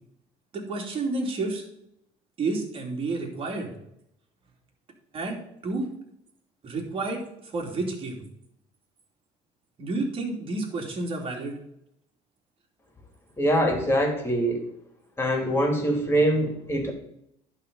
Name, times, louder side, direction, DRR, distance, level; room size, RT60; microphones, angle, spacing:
voice 1, 0.5-1.6 2.4-3.7 5.1-5.9 6.6-8.2 9.8-11.6, right 3 dB, 40° right, 1 dB, 2.9 m, -30 dB
voice 2, 13.4-14.6 15.2-16.9, equal, 15° left, 3 dB, 3.0 m, -23 dB
11.0 x 4.1 x 7.1 m, 0.77 s
supercardioid pair, 100°, 14 cm